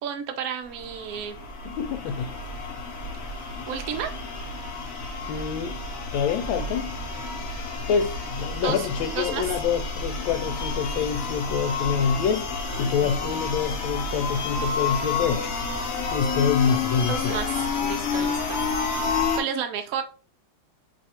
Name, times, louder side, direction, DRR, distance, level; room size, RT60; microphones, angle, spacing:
voice 1, 0.0-1.4 3.7-4.1 8.6-8.9 9.2-9.4 13.0-13.2 17.1-18.6 19.3-20.0, right 8 dB, 75° right, 0.8 m, -31 dB
sound 1, 0.7-19.4, left 4 dB, 55° left, 0.9 m, -30 dB
voice 2, 1.6-2.3 5.3-5.8 6.1-6.9 7.9-12.5 12.8-15.5 16.1-17.4, left 6 dB, 80° left, 1.3 m, -26 dB
3.3 x 2.3 x 4.2 m
omnidirectional pair, 2.2 m